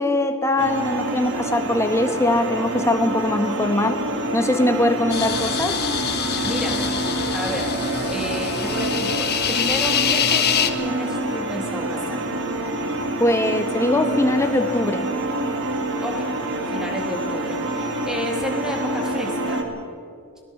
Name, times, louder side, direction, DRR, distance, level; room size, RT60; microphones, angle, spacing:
voice 1, 0.0-4.0 4.3-5.8 13.2-15.1, left 1 dB, 15° left, 6 dB, 1.5 m, -21 dB
sound 1, 0.6-19.6, right 1 dB, 55° right, 2.4 m, -27 dB
sound 2, 5.1-10.7, left 8 dB, 45° left, 1.3 m, -25 dB
voice 2, 6.4-7.0 7.3-7.7 8.1-12.2 16.0-16.3 16.7-19.6, equal, 5° right, 1 dB, 3.3 m, -31 dB
20.0 x 19.0 x 7.2 m, 2.3 s
head